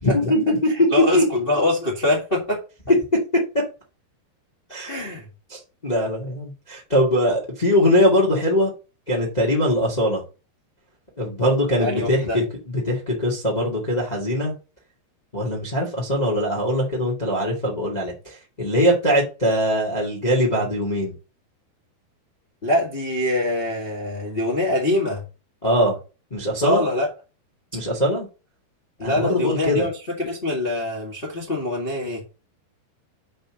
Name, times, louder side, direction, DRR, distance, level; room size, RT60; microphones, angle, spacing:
voice 1, 0.0-0.7 1.0-1.2 4.7-5.0 5.5-8.7 9.1-10.2 11.2-14.5 15.3-21.1 25.6-26.0 26.3-26.8 27.7-28.3 29.0-29.9, equal, 65° left, 0.4 m, -21 dB
voice 2, 0.7-2.6 4.8-5.3 11.8-12.4 22.6-25.2 26.6-27.1 29.0-32.2, left 1 dB, 25° left, 1.3 m, -24 dB
5.6 x 5.3 x 6.2 m
omnidirectional pair, 4.8 m